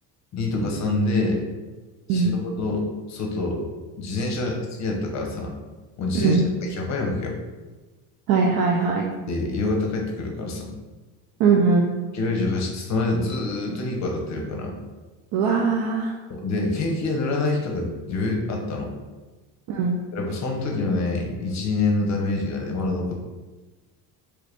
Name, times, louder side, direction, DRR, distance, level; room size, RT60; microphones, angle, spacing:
voice 1, 0.3-1.5 2.1-3.7 4.0-5.5 6.0-7.4 9.3-10.7 12.1-14.7 16.3-18.9 20.1-23.1, left 2 dB, 40° left, 1 dB, 0.7 m, -26 dB
voice 2, 6.1-6.5 8.3-9.1 11.4-11.9 15.3-16.2 19.7-20.0, right 4 dB, 60° right, -1 dB, 0.5 m, -20 dB
3.1 x 2.4 x 3.4 m, 1.2 s
cardioid pair, 105°, 41 cm